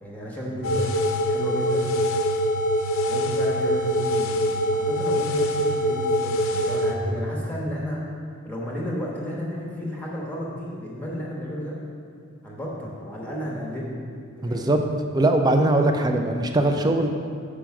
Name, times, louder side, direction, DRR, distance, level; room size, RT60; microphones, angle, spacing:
voice 1, 0.0-0.9 1.3-1.9 3.0-4.5 4.7-8.0 8.4-11.8 12.4-13.9 14.4-14.8, equal, 10° left, -5 dB, 1.0 m, -32 dB
sound 1, 0.6-6.9, equal, 65° left, 0.6 m, -24 dB
voice 2, 14.4-14.8 15.1-17.1, right 2 dB, 20° right, 5 dB, 0.4 m, -21 dB
6.1 x 5.0 x 5.8 m, 2.3 s
head